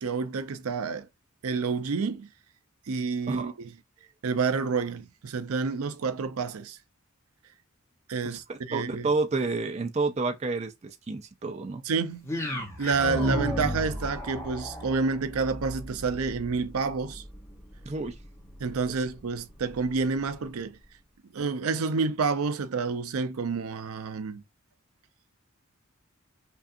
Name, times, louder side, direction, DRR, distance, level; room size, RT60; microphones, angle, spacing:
voice 1, 0.0-1.1 1.4-2.3 2.9-3.7 4.2-6.8 8.1-9.0 11.9-12.3 12.8-17.2 18.6-20.8 21.3-24.4, right 4 dB, 80° right, 0.5 m, -29 dB
voice 2, 8.2-11.8 17.9-18.2 19.0-19.1, right 3 dB, 30° right, 0.4 m, -30 dB
sound 1, 12.2-20.5, equal, 15° left, 0.8 m, -36 dB
5.4 x 2.4 x 2.5 m
head